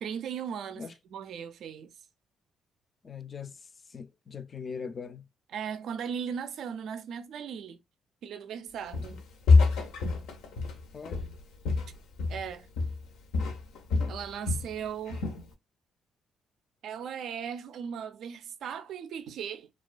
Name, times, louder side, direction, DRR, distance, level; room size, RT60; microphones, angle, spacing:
voice 1, 0.0-0.8 1.1-1.9 5.5-7.8 8.2-9.2 12.3-12.7 14.1-15.3 16.8-19.7, right 7 dB, 70° right, 0.3 m, -37 dB
voice 2, 3.0-5.2 10.9-11.2, left 6 dB, 40° left, 0.3 m, -41 dB
Walk footsteps, 8.9-9.2 9.5-12.5 12.8-13.1 13.3-14.7 15.1-15.5, left 4 dB, 90° left, 0.5 m, -26 dB
2.3 x 2.2 x 2.4 m
cardioid pair, 90°, 0 cm